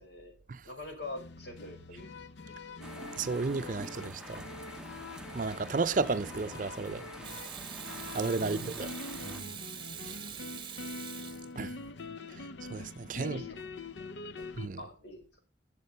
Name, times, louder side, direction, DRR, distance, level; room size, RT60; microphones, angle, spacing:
voice 1, 0.0-0.3 0.6-3.2 3.8-3.9 8.3-8.8 13.2-13.9 14.4-14.5 14.8-15.4, left 1 dB, 65° left, 5.5 m, -46 dB
sound 1, 1.0-14.7, left 3 dB, 90° left, 0.7 m, -44 dB
sound 2, 2.8-9.4, right 1 dB, 5° right, 0.7 m, -47 dB
voice 2, 3.2-4.5 5.3-7.0 8.1-8.9 9.2-9.5 10.0-10.2 11.6-11.7 12.7-13.4 14.6-14.8, right 4 dB, 45° right, 0.5 m, -33 dB
Water tap faucet / Sink (filling or washing), 7.2-12.0 14.4-14.6, right 9 dB, 25° right, 1.1 m, -44 dB
12.5 x 7.4 x 5.6 m
head